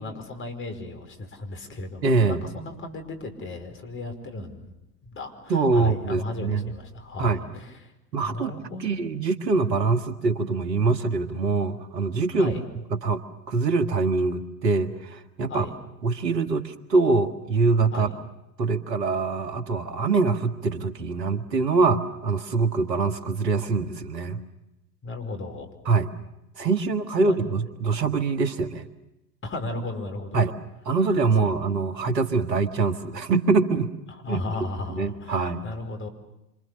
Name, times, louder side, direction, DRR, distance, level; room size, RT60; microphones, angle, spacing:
voice 1, 0.0-4.7 5.0-7.9 8.2-8.9 12.3-12.6 15.5-15.7 17.9-18.1 25.0-25.7 27.2-27.4 29.4-30.4 31.4-31.5 34.1-36.1, left 2 dB, 25° left, 4 dB, 5.2 m, -35 dB
voice 2, 2.0-2.4 5.5-6.6 7.2-7.4 8.1-8.5 8.8-12.5 13.0-13.2 13.5-15.7 16.0-18.1 18.6-24.4 25.9-26.1 26.6-28.9 30.3-30.6 30.9-33.9 34.3-34.4 34.9-35.6, right 4 dB, 80° right, 8 dB, 2.0 m, -24 dB
27.0 x 27.0 x 6.8 m, 0.91 s
figure-of-eight pair, 85°, 49 cm